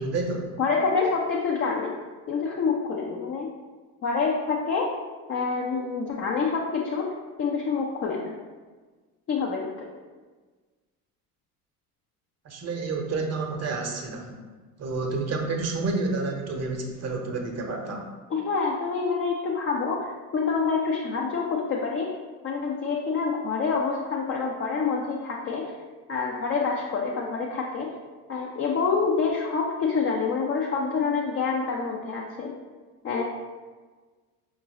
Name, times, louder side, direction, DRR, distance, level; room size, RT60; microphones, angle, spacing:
voice 1, 0.0-0.5 12.4-14.4 14.8-18.1, right 3 dB, 35° right, 2 dB, 0.8 m, -29 dB
voice 2, 0.6-1.9 2.3-3.5 4.0-4.9 5.3-7.1 7.4-8.4 9.3-9.9 18.3-22.2 22.4-25.7 26.1-27.9 28.3-32.5 33.0-33.2, left 5 dB, 30° left, -2 dB, 0.5 m, -27 dB
5.2 x 2.6 x 2.9 m, 1.4 s
hypercardioid pair, 65°, 47 cm